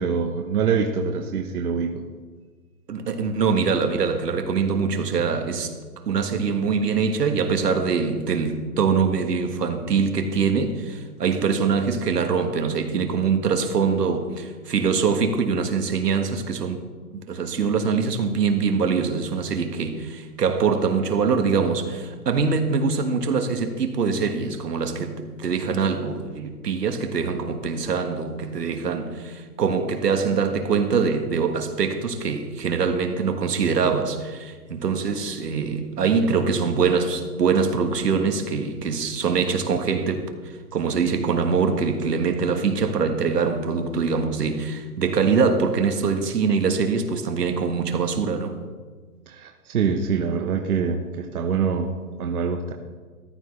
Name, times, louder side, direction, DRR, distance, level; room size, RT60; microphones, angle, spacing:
voice 1, 0.0-2.0 49.3-51.9 52.2-52.7, right 6 dB, 65° right, 1.2 m, -25 dB
voice 2, 2.9-5.7 6.1-16.8 17.1-48.6, right 5 dB, 85° right, 1.6 m, -23 dB
14.0 x 11.0 x 3.2 m
hypercardioid pair, 165°, 47 cm